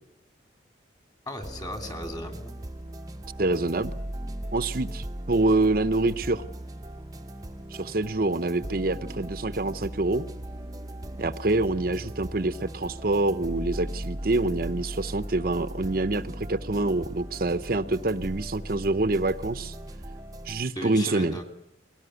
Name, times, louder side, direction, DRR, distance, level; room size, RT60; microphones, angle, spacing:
voice 1, 1.3-2.6 20.7-21.4, equal, 20° left, 5 dB, 3.0 m, -36 dB
sound 1, 1.4-20.6, right 1 dB, 20° right, 0.8 m, -38 dB
voice 2, 3.4-3.9 4.5-6.4 7.7-10.2 11.2-19.8 20.4-21.4, right 2 dB, 50° right, 12 dB, 0.8 m, -26 dB
22.5 x 18.0 x 9.6 m, 0.87 s
head